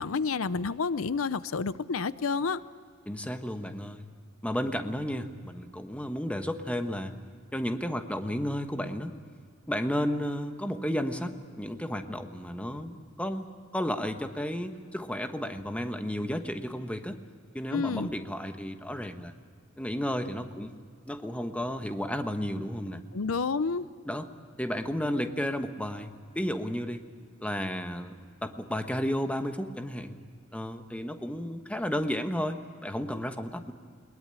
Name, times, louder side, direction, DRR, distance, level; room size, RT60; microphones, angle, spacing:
voice 1, 0.0-2.6 17.7-18.1 23.1-23.9, left 4 dB, 85° left, 16 dB, 0.6 m, -29 dB
voice 2, 3.1-4.1 4.4-7.1 7.5-9.1 9.7-13.4 13.7-17.2 17.5-19.3 19.8-20.7 21.1-23.0 24.1-24.2 24.6-27.0 27.4-30.2 30.5-33.7, equal, 5° left, 7 dB, 1.1 m, -32 dB
21.5 x 21.0 x 8.9 m, 2.1 s
head